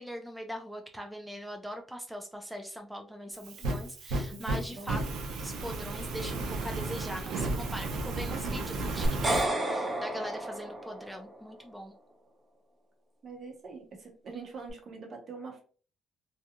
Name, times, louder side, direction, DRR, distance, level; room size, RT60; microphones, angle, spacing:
voice 1, 0.0-5.0 5.4-11.9, equal, 5° right, 3 dB, 0.4 m, -41 dB
Fire, 3.3-9.5, right 2 dB, 85° right, 0.6 m, -34 dB
voice 2, 4.3-5.1 8.3-8.7 13.2-15.6, right 4 dB, 55° right, 2 dB, 0.9 m, -44 dB
sound 1, 9.0-11.3, right 1 dB, 25° right, 0.9 m, -31 dB
2.3 x 2.3 x 2.9 m, 0.40 s
cardioid pair, 90°, 0 cm